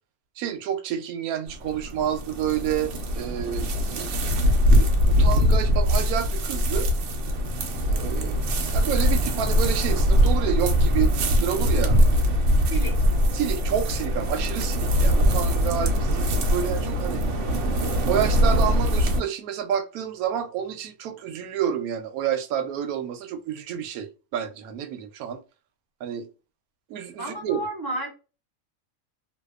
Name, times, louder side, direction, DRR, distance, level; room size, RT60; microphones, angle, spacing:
voice 1, 0.4-3.7 4.0-4.2 4.7-6.9 7.8-8.4 8.7-12.0 13.3-17.2 18.1-25.4 26.0-26.3 26.9-27.7, right 9 dB, 90° right, 1.0 m, -29 dB
sound 1, 1.5-19.2, equal, 65° right, 0.9 m, -22 dB
voice 2, 27.2-28.1, right 1 dB, 20° right, 0.6 m, -31 dB
2.7 x 2.2 x 2.3 m
omnidirectional pair, 1.5 m